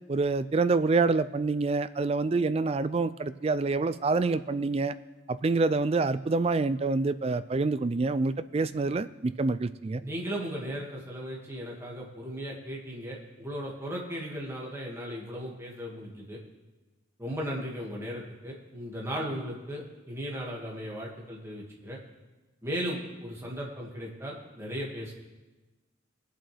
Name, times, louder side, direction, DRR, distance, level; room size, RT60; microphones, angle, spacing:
voice 1, 0.1-4.9 5.3-10.0, right 3 dB, 30° right, 13 dB, 0.3 m, -27 dB
voice 2, 10.0-16.4 17.2-22.0 22.6-25.1, equal, 15° right, -3 dB, 2.0 m, -36 dB
21.5 x 7.6 x 3.4 m, 1.2 s
head